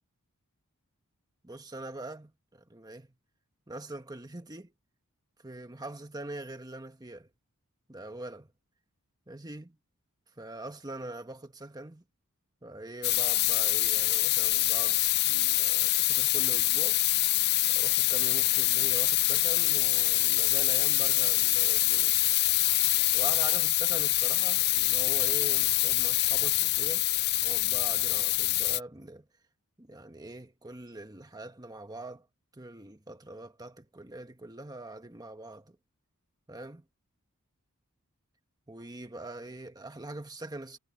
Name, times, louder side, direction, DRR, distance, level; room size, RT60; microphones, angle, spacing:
voice 1, 1.4-3.1 3.7-4.7 5.4-7.3 7.9-8.5 9.3-9.8 10.4-12.0 12.6-17.0 17.7-22.2 23.1-27.1 27.4-29.3 29.8-32.3 32.5-35.8 36.5-36.8 38.7-40.8, right 2 dB, 15° right, 1.3 m, -43 dB
sound 1, 13.0-28.8, left 17 dB, 45° left, 0.5 m, -25 dB
head